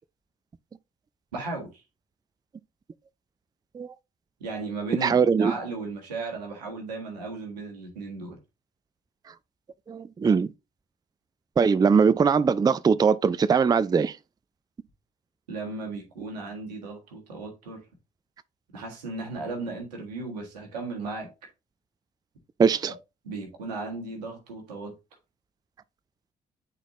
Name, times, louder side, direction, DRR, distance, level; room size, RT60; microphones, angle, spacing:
voice 1, 1.3-1.8 4.4-8.4 15.5-17.8 18.7-21.3 22.9-23.0 23.2-24.9, right 3 dB, 80° right, 1.5 m, -35 dB
voice 2, 5.0-5.5 9.9-10.5 11.6-14.1 22.6-22.9, right 6 dB, 20° right, 0.4 m, -21 dB
9.7 x 4.0 x 2.9 m
figure-of-eight pair, 40°, 21 cm